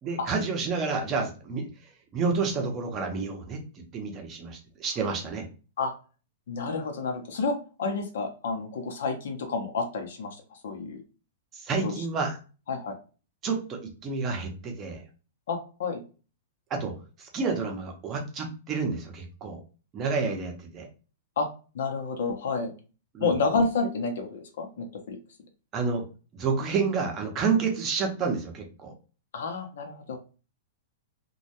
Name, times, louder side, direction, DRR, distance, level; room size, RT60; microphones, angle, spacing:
voice 1, 0.0-1.7 2.1-3.6 3.9-5.5 11.5-12.4 13.4-15.0 16.7-19.6 19.9-20.9 23.1-23.3 25.7-26.0 26.3-28.9, right 4 dB, 25° right, 2 dB, 0.7 m, -29 dB
voice 2, 6.5-10.4 10.6-11.0 11.8-11.9 12.7-12.9 15.5-16.0 21.4-21.5 21.7-22.7 23.2-25.2 29.3-30.2, left 4 dB, 70° left, 4 dB, 0.7 m, -29 dB
2.2 x 2.1 x 2.7 m, 0.35 s
hypercardioid pair, 150°, 0 cm